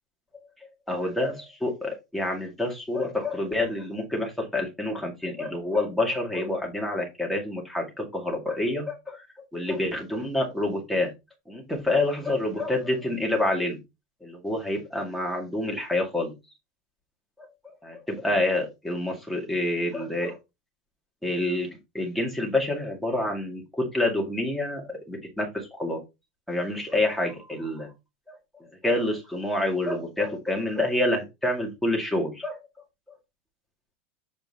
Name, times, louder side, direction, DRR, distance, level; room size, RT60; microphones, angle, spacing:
voice 1, 0.9-9.2 9.5-11.1 11.5-13.8 14.2-16.3 17.6-20.4 21.2-21.7 21.9-26.0 26.5-27.9 28.3-28.4 28.8-32.6, left 1 dB, ahead, 0 dB, 1.9 m, -27 dB
7.3 x 4.4 x 4.1 m, 0.23 s
supercardioid pair, 175°, 6 cm